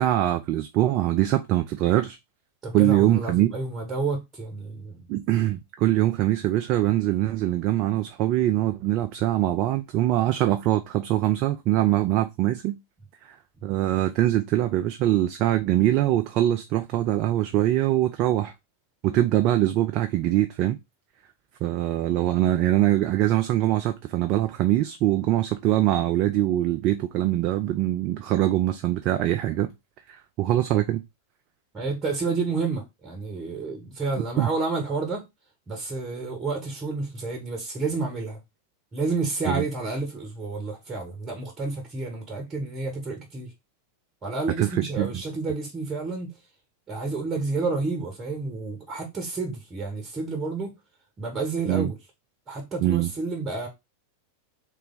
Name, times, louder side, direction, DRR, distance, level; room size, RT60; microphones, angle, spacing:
voice 1, 0.0-2.2 2.7-3.5 5.1-12.8 13.6-18.5 19.0-20.8 21.6-29.7 30.1-31.0 34.4-34.5 39.5-39.6 44.6-45.1 51.7-51.9 52.8-53.1, right 13 dB, 40° right, 0.4 m, -23 dB
voice 2, 2.6-5.1 31.7-35.2 35.7-38.4 38.9-43.5 44.2-46.3 46.9-50.8 51.2-52.0 52.5-53.7, right 3 dB, 20° right, 1.2 m, -30 dB
3.3 x 3.3 x 3.8 m
figure-of-eight pair, 90°, 0 cm